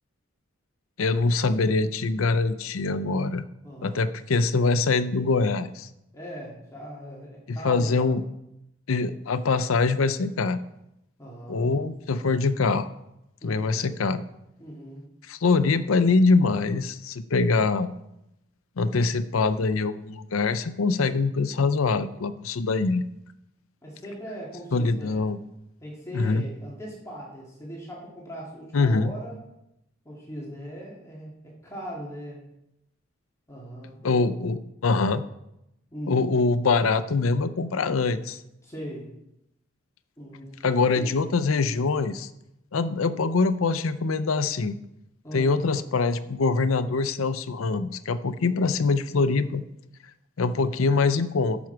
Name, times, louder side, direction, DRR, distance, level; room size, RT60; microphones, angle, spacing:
voice 1, 1.0-3.4 3.8-5.9 7.5-8.2 8.9-10.6 11.5-12.9 13.4-14.2 15.3-17.9 18.8-23.0 24.7-25.4 26.1-26.5 28.7-29.1 34.0-35.2 36.1-38.4 40.6-42.3 42.7-44.8 45.3-49.6 50.4-51.6, left 4 dB, 90° left, 13 dB, 0.6 m, -24 dB
voice 2, 3.6-4.1 6.1-8.1 11.2-11.7 13.4-13.9 14.6-15.0 23.8-25.2 25.8-29.4 30.0-32.4 33.5-34.2 35.9-36.2 38.6-39.1 40.2-40.7 41.0-41.1 45.2-45.6 50.6-51.0, equal, 15° left, -5 dB, 2.3 m, -39 dB
12.5 x 6.1 x 4.6 m, 0.85 s
head